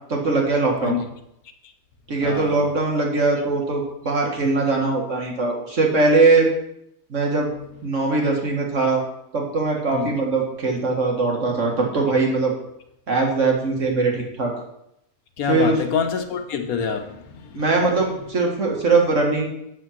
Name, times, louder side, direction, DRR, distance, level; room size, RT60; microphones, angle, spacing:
voice 1, 0.1-1.0 2.1-6.5 7.1-7.5 7.8-9.0 9.3-12.5 13.1-14.5 15.5-15.8 17.5-19.5, right 3 dB, 60° right, 2.1 m, -21 dB
voice 2, 2.2-2.7 9.9-10.1 15.4-17.6, left 6 dB, 80° left, 1.4 m, -26 dB
7.7 x 6.5 x 5.9 m
omnidirectional pair, 1.5 m